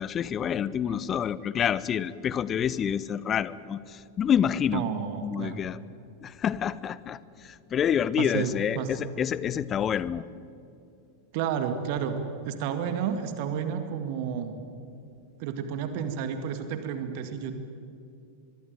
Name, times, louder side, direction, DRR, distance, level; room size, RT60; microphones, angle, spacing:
voice 1, 0.0-4.9 5.2-5.8 6.2-10.2, left 8 dB, 25° left, 18 dB, 0.9 m, -28 dB
voice 2, 4.7-5.6 8.2-8.9 11.3-14.6 15.4-17.6, right 7 dB, 45° right, 8 dB, 2.0 m, -31 dB
24.0 x 23.0 x 9.3 m, 2.6 s
figure-of-eight pair, 90°, 0 cm